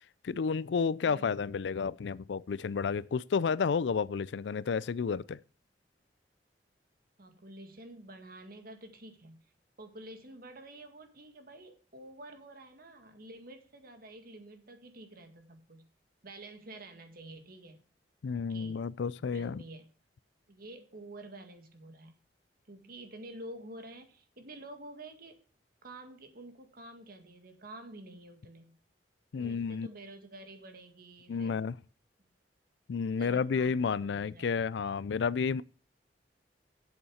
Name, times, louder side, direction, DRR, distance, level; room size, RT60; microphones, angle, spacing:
voice 1, 0.2-5.4 18.2-19.6 29.3-29.9 31.3-31.7 32.9-35.6, left 5 dB, 85° left, 0.4 m, -31 dB
voice 2, 7.2-9.4 9.8-15.9 16.2-17.8 18.5-19.9 20.5-22.1 22.7-25.4 25.8-28.8 29.4-31.6 33.2-34.7, right 1 dB, 55° right, 1.9 m, -49 dB
8.1 x 7.1 x 6.4 m
head